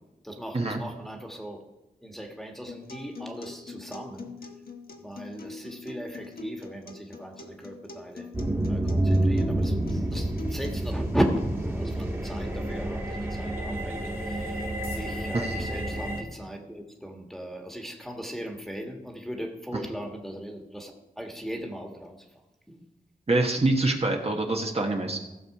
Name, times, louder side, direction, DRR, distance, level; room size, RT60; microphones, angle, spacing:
voice 1, 0.0-1.6 2.0-4.4 5.0-8.3 8.7-22.3 22.7-22.9, equal, ahead, 2 dB, 1.6 m, -36 dB
Acoustic guitar, 2.7-10.7, left 3 dB, 70° left, 1.1 m, -43 dB
sound 1, 8.3-16.2, right 1 dB, 15° right, 1.6 m, -29 dB
voice 2, 23.3-25.2, right 2 dB, 40° right, 1 dB, 1.2 m, -25 dB
15.5 x 6.8 x 4.7 m, 1.0 s
wide cardioid pair, 95°, 16 cm